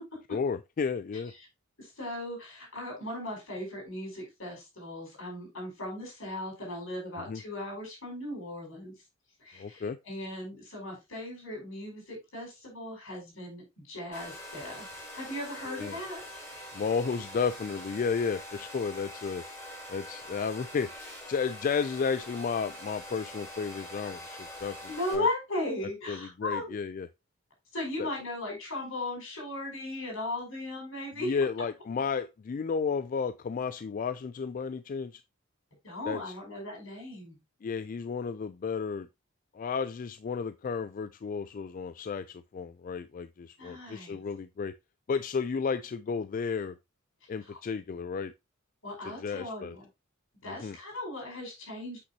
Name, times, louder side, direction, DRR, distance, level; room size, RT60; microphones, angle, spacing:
voice 1, 0.3-1.3 7.3-7.4 9.6-10.0 15.7-16.0 16.7-19.4 19.9-20.9 21.3-25.3 26.1-27.1 28.0-28.1 31.2-35.2 36.1-36.3 37.6-39.1 39.5-44.7 45.1-46.8 47.3-48.3 49.0-49.8 50.4-50.8, left 5 dB, 40° left, 0.3 m, -33 dB
voice 2, 1.8-8.9 9.4-14.9 15.1-16.2 24.9-26.7 27.7-31.4 35.8-37.4 43.6-44.2 48.8-49.9 50.4-52.0, left 1 dB, 70° left, 5.4 m, -37 dB
Domestic sounds home sounds, 14.1-25.2, left 1 dB, 10° left, 5.4 m, -44 dB
8.1 x 6.0 x 2.8 m
head